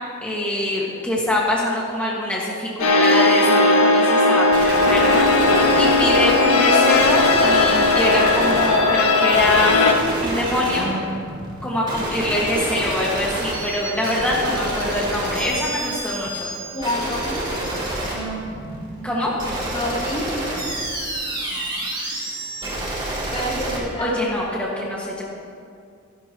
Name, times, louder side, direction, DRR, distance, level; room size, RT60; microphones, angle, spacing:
voice 1, 0.2-5.3 5.8-9.9 10.2-10.9 11.6-16.5 19.0-19.3 24.0-25.2, left 1 dB, 5° left, -6 dB, 1.8 m, -24 dB
sound 1, 2.8-9.9, left 3 dB, 80° left, 1.8 m, -17 dB
sound 2, 4.5-23.8, right 1 dB, 20° right, 3.3 m, -28 dB
voice 2, 16.7-17.5 19.7-20.3 23.3-24.2, left 1 dB, 25° left, -5 dB, 3.0 m, -27 dB
26.5 x 11.5 x 3.1 m, 2.3 s
head